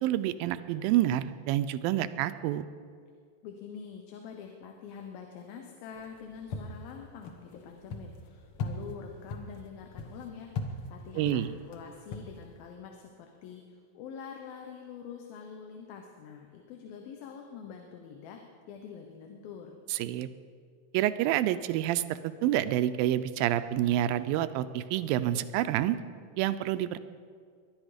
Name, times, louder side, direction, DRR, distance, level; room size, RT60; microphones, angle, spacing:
voice 1, 0.0-2.7 11.2-11.5 19.9-20.3 20.9-26.0 26.4-27.0, right 13 dB, 85° right, 13 dB, 2.4 m, -28 dB
voice 2, 3.4-18.4 18.7-19.8, left 7 dB, 90° left, 3 dB, 2.9 m, -45 dB
sound 1, 5.9-12.7, left 3 dB, 60° left, 1.4 m, -41 dB
21.5 x 11.5 x 5.0 m, 2.1 s
omnidirectional pair, 4.1 m